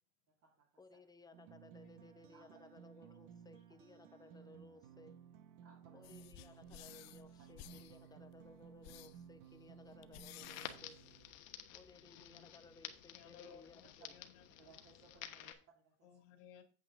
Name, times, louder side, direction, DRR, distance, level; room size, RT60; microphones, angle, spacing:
voice 1, 0.8-5.2 5.9-11.0 11.7-14.2, left 2 dB, 10° left, 10 dB, 0.7 m, -60 dB
sound 1, 1.3-11.3, right 8 dB, 65° right, 1.1 m, -58 dB
voice 2, 1.8-2.3 3.0-3.1 3.5-3.6 4.3-4.4 6.0-6.3 6.8-8.2 12.0-12.5 12.8-14.7 16.0-16.6, left 8 dB, 70° left, 6 dB, 2.0 m, -63 dB
voice 3, 2.3-2.7 5.6-6.1 13.4-13.5 14.6-16.1, right 4 dB, 40° right, -2 dB, 2.4 m, -64 dB
sound 2, 6.0-11.6, left 15 dB, 45° left, 0.6 m, -57 dB
Crackle, 10.4-15.5, left 11 dB, 85° left, 1.3 m, -52 dB
8.6 x 7.6 x 3.6 m, 0.37 s
supercardioid pair, 125°, 39 cm